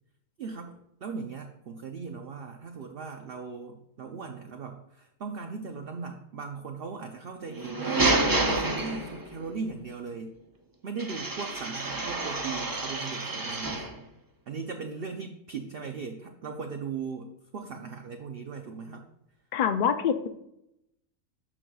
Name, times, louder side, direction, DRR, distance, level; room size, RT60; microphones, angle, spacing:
voice 1, 0.4-8.1 8.4-10.3 10.8-13.9 14.5-19.0, right 5 dB, 55° right, 4 dB, 0.7 m, -38 dB
sound 1, 7.5-9.4 11.0-14.0, right 2 dB, 25° right, 0.4 m, -29 dB
voice 2, 19.5-20.3, left 7 dB, 75° left, 8 dB, 0.4 m, -25 dB
12.0 x 6.2 x 2.3 m, 0.81 s
omnidirectional pair, 1.4 m